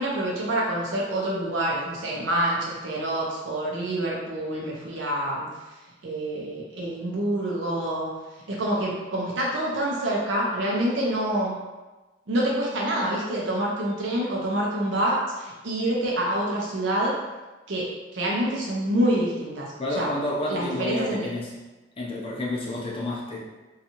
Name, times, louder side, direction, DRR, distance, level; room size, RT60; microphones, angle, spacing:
voice 1, 0.0-5.5 6.0-8.1 8.5-11.6 12.3-17.2 17.7-20.1 20.5-21.3, right 1 dB, 90° right, -4 dB, 0.5 m, -27 dB
voice 2, 19.8-21.5 22.0-23.5, left 1 dB, 30° left, -4 dB, 0.4 m, -30 dB
2.6 x 2.4 x 2.8 m, 1.2 s
head